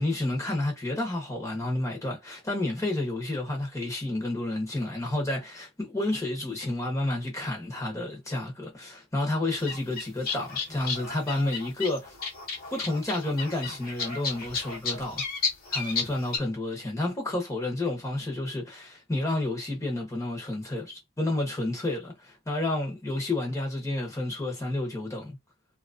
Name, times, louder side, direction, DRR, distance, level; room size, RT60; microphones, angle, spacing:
voice 1, 0.0-12.2 12.7-15.2 15.7-25.4, left 2 dB, 15° left, 0.9 m, -30 dB
sound 1, 9.5-16.4, left 5 dB, 45° left, 1.2 m, -33 dB
2.9 x 2.4 x 2.5 m
head